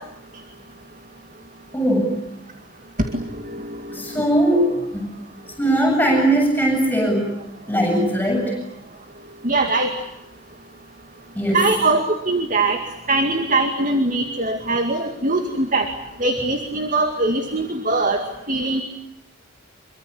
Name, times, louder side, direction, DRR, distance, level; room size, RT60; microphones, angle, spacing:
voice 1, 1.7-2.3 3.9-5.1 5.6-7.3 7.7-8.6 11.4-11.7, right 1 dB, 10° left, 1 dB, 7.8 m, -20 dB
voice 2, 3.1-3.8 4.2-4.3 9.4-9.9 11.5-12.8 13.1-15.9 16.2-18.8, right 2 dB, 40° right, 6 dB, 2.3 m, -21 dB
26.5 x 24.0 x 8.5 m, 0.86 s
head